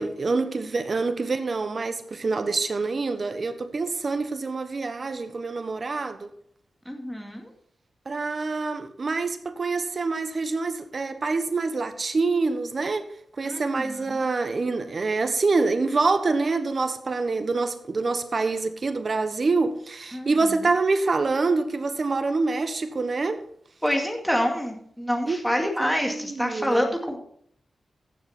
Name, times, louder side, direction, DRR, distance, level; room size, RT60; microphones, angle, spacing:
voice 1, 0.0-6.3 8.1-13.0 13.4-23.4 25.3-25.4 25.8-26.9, right 3 dB, 50° right, 1.1 m, -26 dB
voice 2, 6.9-7.5 13.4-14.2 20.1-20.5 23.8-27.2, equal, ahead, 2.2 m, -27 dB
15.0 x 7.0 x 4.3 m
cardioid pair, 75°, 0 cm